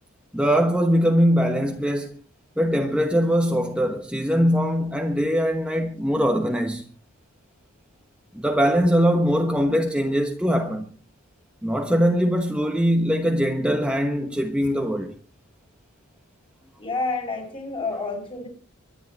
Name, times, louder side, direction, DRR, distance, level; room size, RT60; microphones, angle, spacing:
voice 1, 0.3-2.1 2.6-6.8 8.3-10.9 11.6-15.1 17.9-18.0, equal, 5° right, 1.1 m, -22 dB
voice 2, 16.8-18.5, left 3 dB, 25° left, 5.7 m, -29 dB
24.5 x 10.5 x 4.2 m
head